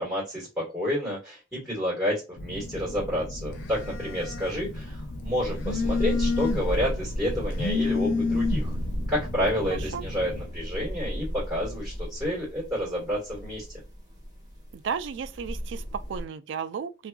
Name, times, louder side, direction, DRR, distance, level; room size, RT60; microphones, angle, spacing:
voice 1, 0.0-8.8 9.1-13.6, equal, 5° right, 1.7 m, -30 dB
Telephone, 2.4-10.4, left 3 dB, 85° left, 0.6 m, -31 dB
sound 1, 3.5-16.2, equal, 20° right, 1.2 m, -35 dB
sound 2, 8.0-12.3, right 1 dB, 55° right, 0.8 m, -43 dB
voice 2, 9.7-10.0 14.7-17.1, right 6 dB, 75° right, 0.3 m, -34 dB
2.8 x 2.4 x 2.3 m
head